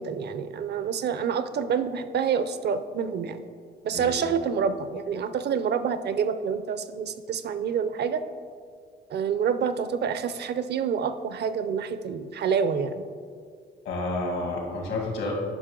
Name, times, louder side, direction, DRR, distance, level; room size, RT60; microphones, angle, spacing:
voice 1, 0.0-3.4 3.8-8.2 9.1-13.0, right 6 dB, 55° right, 11 dB, 0.6 m, -27 dB
voice 2, 13.8-15.3, left 2 dB, 85° left, 0 dB, 2.2 m, -30 dB
11.0 x 5.2 x 3.8 m, 2.1 s
cardioid pair, 90°, 20 cm